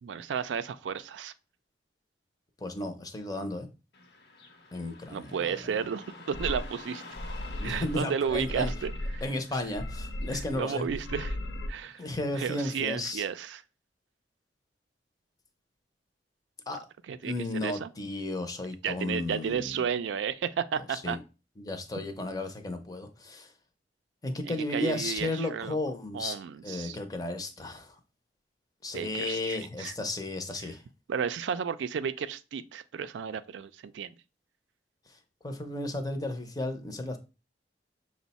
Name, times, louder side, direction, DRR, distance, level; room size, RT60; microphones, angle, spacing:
voice 1, 0.0-1.3 5.1-7.0 7.6-9.2 10.3-11.4 11.7-12.0 12.3-13.6 17.1-17.3 17.6-17.9 18.8-21.2 24.4-25.8 26.1-27.0 28.9-29.9 30.6-30.7 31.1-34.1, right 7 dB, 90° right, 0.3 m, -33 dB
voice 2, 2.6-3.7 4.7-5.6 7.6-8.7 9.2-10.8 12.0-13.2 16.7-16.8 17.2-19.8 20.9-21.2 21.6-23.5 24.2-26.4 26.6-27.9 28.8-30.8 35.4-37.2, left 2 dB, 20° left, 0.5 m, -34 dB
Car passing by / Traffic noise roadway noise, 3.9-13.0, left 2 dB, 65° left, 0.8 m, -51 dB
sound 1, 6.3-6.7 7.1-8.0 8.2-9.3 9.6-10.6 10.9-11.7, left 1 dB, 85° left, 0.5 m, -36 dB
6.0 x 2.1 x 4.0 m
head